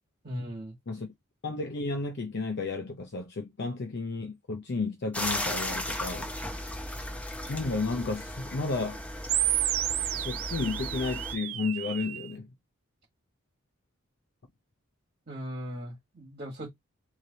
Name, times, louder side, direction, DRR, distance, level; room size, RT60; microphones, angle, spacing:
voice 1, 0.2-0.7 15.3-16.7, equal, 40° right, 1.5 m, -38 dB
voice 2, 1.4-6.3 7.5-9.0 10.1-12.5, left 3 dB, 50° left, 0.6 m, -32 dB
sound 1, 5.1-11.3, left 1 dB, 5° left, 0.7 m, -36 dB
sound 2, 9.3-12.3, right 13 dB, 75° right, 0.5 m, -31 dB
3.1 x 2.8 x 3.9 m
head